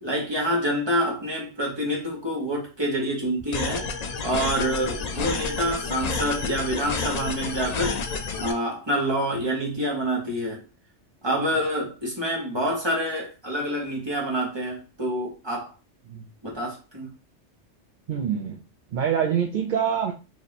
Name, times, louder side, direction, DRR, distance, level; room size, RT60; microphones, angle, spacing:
voice 1, 0.0-3.9 4.2-8.0 8.4-10.6 11.2-15.7 16.4-17.1, equal, 20° right, 1.3 m, -27 dB
sound 1, 3.5-8.5, left 4 dB, 55° left, 0.4 m, -30 dB
voice 2, 18.1-18.6 18.9-20.1, right 8 dB, 55° right, 0.6 m, -25 dB
3.1 x 2.7 x 4.0 m
omnidirectional pair, 1.2 m